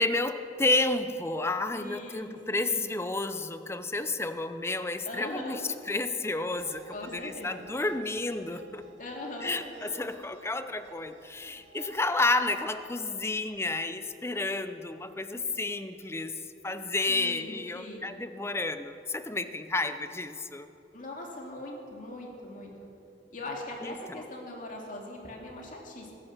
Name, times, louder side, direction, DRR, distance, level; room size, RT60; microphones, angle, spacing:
voice 1, 0.0-5.6 5.9-8.8 9.4-16.3 16.6-20.7 23.8-24.2, left 2 dB, 15° left, 11 dB, 0.6 m, -31 dB
voice 2, 1.7-2.9 5.0-5.6 6.9-7.6 9.0-9.6 17.1-18.1 20.9-22.7 23.3-26.1, left 2 dB, 45° left, -1 dB, 2.6 m, -41 dB
sound 1, 6.6-13.4, right 5 dB, 85° right, 1.8 m, -54 dB
21.0 x 9.9 x 5.9 m, 2.9 s
head